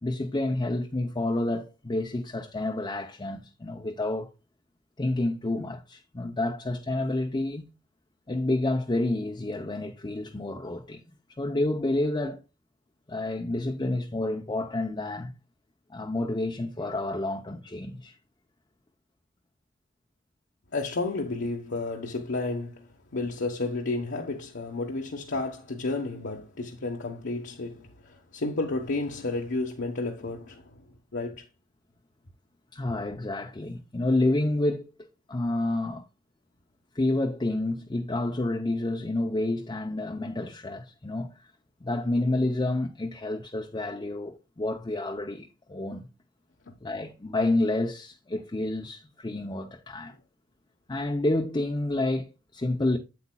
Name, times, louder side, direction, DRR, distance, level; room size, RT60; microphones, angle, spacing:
voice 1, 0.0-4.3 5.0-7.7 8.3-11.0 11.4-12.4 13.1-15.3 15.9-18.1 32.7-34.9 35.3-36.0 36.9-41.3 41.8-46.1 46.8-50.2 50.9-53.0, left 2 dB, 25° left, 0.6 m, -29 dB
voice 2, 20.7-30.8 31.1-31.4 46.7-46.8, left 2 dB, 65° left, 1.1 m, -32 dB
8.5 x 8.1 x 2.3 m
head